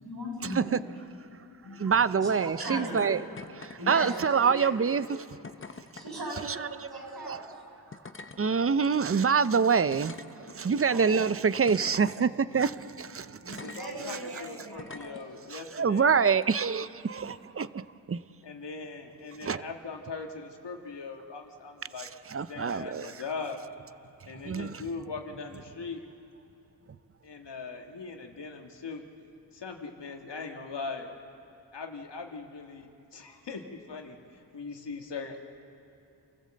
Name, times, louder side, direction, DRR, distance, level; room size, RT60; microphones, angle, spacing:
voice 1, 0.0-0.8 1.6-3.1 3.8-4.7 5.0-5.1 5.9-7.6 10.8-11.2 13.4-15.6, right 1 dB, 65° right, 6.7 m, -39 dB
voice 2, 1.8-3.2 3.5-5.1 7.3-7.4 8.4-13.7 15.5-17.8 18.1-18.2 19.4-19.6 22.0-23.1 24.4-24.8, right 6 dB, 35° right, 0.6 m, -26 dB
sound 1, 3.4-3.8 4.0-4.5 5.4-6.1 7.2-7.3 7.9-8.4 9.1-9.2 9.9-10.8 11.7-12.3 13.5-13.8 14.8-15.2 16.3-16.5, left 4 dB, 30° left, 0.9 m, -45 dB
voice 3, 13.6-16.1 18.4-22.1 22.5-23.6 24.2-26.0 27.2-29.1 29.5-31.1 31.7-34.2 34.5-35.4, left 4 dB, 85° left, 1.7 m, -40 dB
28.0 x 15.0 x 7.6 m
wide cardioid pair, 70°, 41 cm